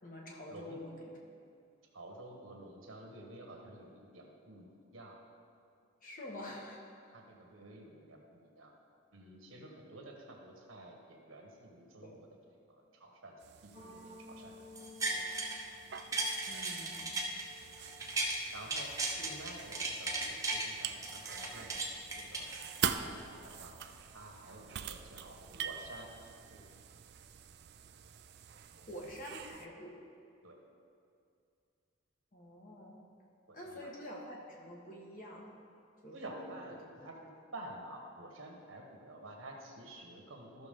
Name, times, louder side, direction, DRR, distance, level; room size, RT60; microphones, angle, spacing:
voice 1, 0.0-1.1 6.0-6.9 12.0-12.2 16.5-17.2 28.7-30.0 32.3-33.1 33.5-35.6 36.0-36.5, left 1 dB, 40° left, -2 dB, 1.4 m, -47 dB
voice 2, 1.9-4.6 4.9-5.2 7.1-8.7 9.1-13.3 13.6-14.6 15.0-15.3 17.5-17.7 18.5-21.8 22.2-22.5 22.8-23.7 24.1-26.6 30.4-30.6 33.5-33.9 36.1-40.7, right 1 dB, 80° right, 1 dB, 1.4 m, -50 dB
sound 1, 13.4-29.7, right 8 dB, 50° right, 0.4 m, -44 dB
sound 2, 13.7-20.0, left 2 dB, 55° left, 2.1 m, -57 dB
sound 3, 14.8-15.6 16.0-18.4 18.7-20.7 21.0-23.0 23.5-23.6, right 2 dB, 15° right, 0.8 m, -36 dB
14.0 x 6.0 x 3.7 m, 2.4 s
head